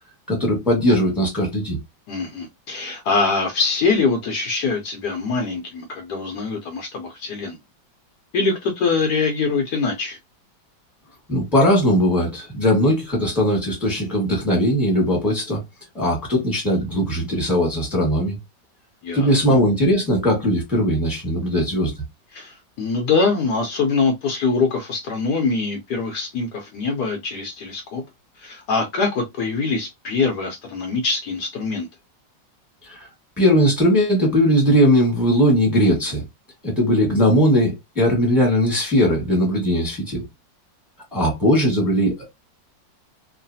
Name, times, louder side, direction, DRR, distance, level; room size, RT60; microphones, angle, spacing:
voice 1, 0.3-1.8 11.3-15.6 15.9-18.4 19.1-21.9 32.8-33.1 33.4-36.2 36.6-40.2 41.1-42.3, equal, ahead, 1.1 m, -19 dB
voice 2, 2.1-7.6 8.3-10.2 19.0-19.6 22.3-28.0 28.4-31.9, left 4 dB, 70° left, 1.1 m, -23 dB
3.1 x 2.4 x 2.6 m
omnidirectional pair, 2.0 m